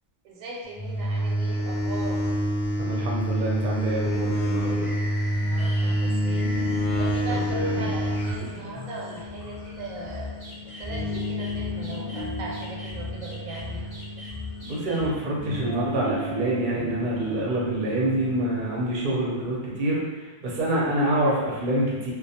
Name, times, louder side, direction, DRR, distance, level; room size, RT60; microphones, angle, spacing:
voice 1, 0.2-2.2 5.4-6.5 7.0-13.9, right 2 dB, 90° right, -2 dB, 1.0 m, -39 dB
sound 1, 0.8-8.4, equal, 70° left, 0.9 m, -26 dB
voice 2, 2.8-4.9 7.4-7.9 14.7-20.0 20.4-22.1, right 1 dB, 50° right, -4 dB, 0.6 m, -26 dB
sound 2, 3.7-15.1, left 2 dB, 20° left, 0.5 m, -40 dB
sound 3, 5.7-19.0, left 1 dB, 20° right, 0.7 m, -35 dB
2.2 x 2.2 x 2.7 m, 1.2 s
omnidirectional pair, 1.4 m